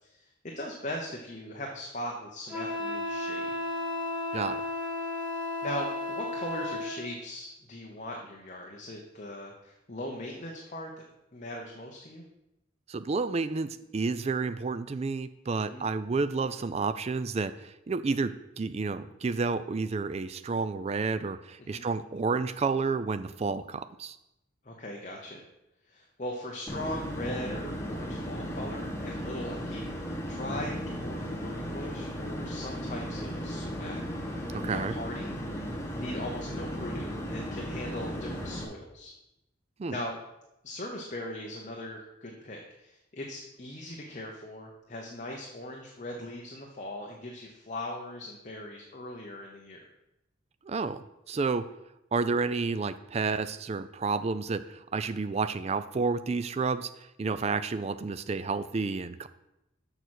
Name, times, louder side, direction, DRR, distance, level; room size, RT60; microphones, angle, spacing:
voice 1, 0.0-3.6 5.6-11.0 11.3-12.2 15.6-15.8 21.7-21.8 24.6-25.4 25.9-34.4 34.7-35.3 35.9-39.1 39.9-40.2 40.6-49.8, left 1 dB, 35° left, 0 dB, 0.9 m, -39 dB
Wind instrument woodwind instrument, 2.5-7.0, left 2 dB, 5° right, 2.0 m, -33 dB
voice 2, 12.9-24.2 34.5-34.9 39.8-40.0 50.6-51.6 52.1-56.9 57.2-59.3, right 4 dB, 30° right, 12 dB, 0.3 m, -30 dB
sound 1, 26.7-38.6, equal, 15° left, 1.0 m, -36 dB
6.8 x 5.9 x 6.3 m, 0.89 s
head